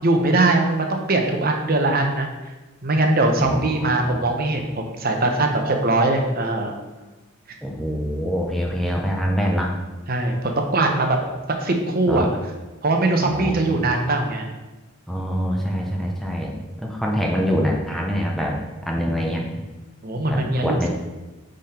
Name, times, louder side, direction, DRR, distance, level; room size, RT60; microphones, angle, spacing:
voice 1, 0.0-2.3 2.8-6.7 10.1-11.2 11.6-12.3 12.8-14.5 20.0-20.9, right 2 dB, 45° right, 4 dB, 0.8 m, -21 dB
voice 2, 3.4-4.3 7.6-9.8 12.1-12.3 13.2-14.0 15.1-19.5 20.3-20.9, equal, ahead, -1 dB, 0.6 m, -25 dB
5.8 x 5.1 x 4.3 m, 1.2 s
head